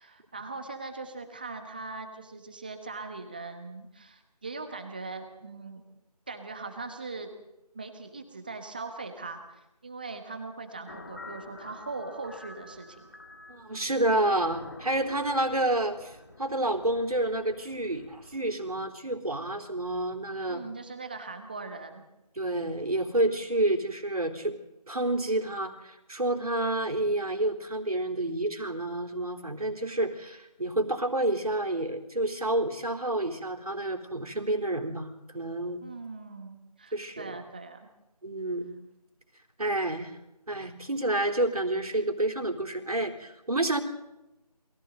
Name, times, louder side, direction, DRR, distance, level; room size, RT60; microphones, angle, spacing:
voice 1, 0.0-5.8 6.3-7.3 7.7-13.1 20.5-22.0 35.8-37.9, right 3 dB, 15° right, 6 dB, 1.2 m, -40 dB
sound 1, 10.9-18.4, left 2 dB, 30° left, 2.0 m, -49 dB
voice 2, 13.5-20.6 22.4-24.5 24.9-35.8 36.9-37.4 38.2-38.8 39.6-40.2 40.5-43.8, right 1 dB, 65° right, 3 dB, 3.7 m, -29 dB
29.0 x 22.5 x 4.0 m, 0.96 s
figure-of-eight pair, 170°, 20 cm